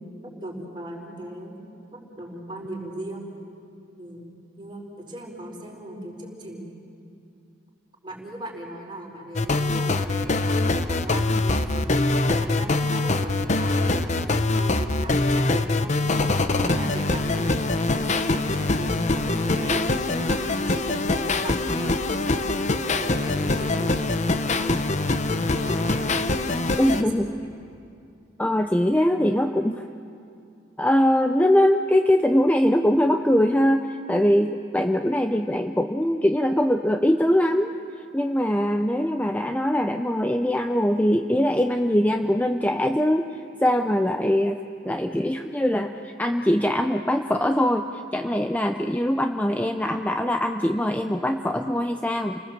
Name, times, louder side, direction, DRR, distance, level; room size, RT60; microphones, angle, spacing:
voice 1, 0.2-1.6 1.9-3.3 4.0-4.3 4.6-6.7 8.0-12.0 12.3-16.0 16.5-21.9 22.3-25.0 25.2-26.1 26.9-27.1, right 1 dB, 25° right, -2 dB, 4.8 m, -38 dB
sound 1, 9.4-27.0, left 2 dB, 35° left, 0.8 m, -23 dB
voice 2, 26.8-27.3 28.4-29.9 30.8-37.7 38.1-52.4, equal, 10° left, 5 dB, 0.6 m, -22 dB
30.0 x 19.5 x 7.5 m, 2.5 s
head